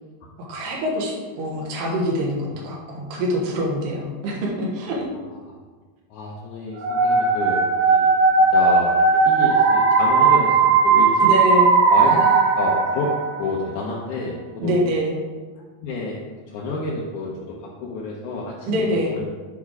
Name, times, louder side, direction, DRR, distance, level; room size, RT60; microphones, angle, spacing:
voice 1, 0.4-5.1 11.2-12.4 14.6-15.2 18.7-19.2, equal, 70° right, -3 dB, 2.8 m, -25 dB
voice 2, 6.1-8.1 8.5-11.3 11.9-12.2 12.5-13.1 13.4-14.8 15.8-16.2 16.5-19.2, left 3 dB, 75° left, -4 dB, 1.9 m, -30 dB
sound 1, 6.8-13.6, right 4 dB, 85° right, 3.1 m, -17 dB
8.6 x 3.6 x 4.7 m, 1.4 s
omnidirectional pair, 4.4 m